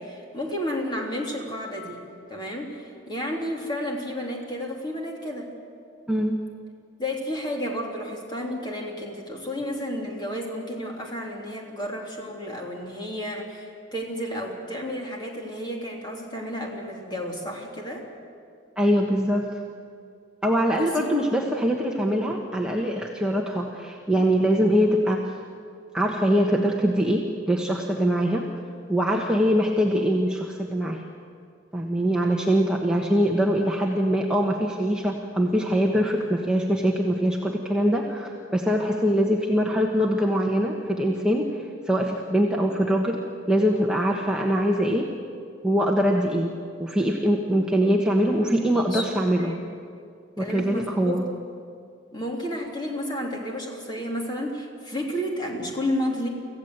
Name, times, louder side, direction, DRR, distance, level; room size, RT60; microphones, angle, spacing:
voice 1, 0.0-2.0 2.3-5.5 7.0-18.0 20.7-21.0 48.4-49.1 49.4-49.7 50.4-51.2 52.1-56.3, equal, 20° left, -1 dB, 3.1 m, -31 dB
voice 2, 6.1-6.4 18.8-19.5 20.4-25.2 25.9-28.5 28.9-31.0 31.7-43.2 43.5-45.1 45.6-46.5 46.8-49.6 50.4-51.2, equal, 5° right, -1 dB, 1.2 m, -23 dB
25.5 x 15.5 x 8.0 m, 2.3 s
head